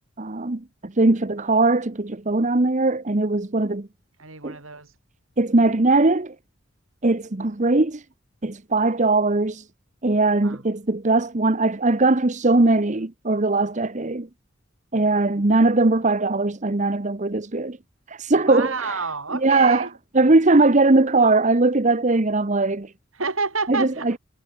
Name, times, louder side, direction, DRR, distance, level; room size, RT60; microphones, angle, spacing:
voice 1, 0.2-3.9 4.4-4.6 5.4-6.3 7.0-8.0 8.4-9.6 10.0-14.3 14.9-17.8 18.1-19.0 19.4-19.9 20.1-22.9 23.7-24.1, right 2 dB, 35° right, 1.0 m, -20 dB
voice 2, 4.2-4.9 10.4-10.6 18.5-19.9 23.2-24.2, right 4 dB, 85° right, 5.3 m, -29 dB
head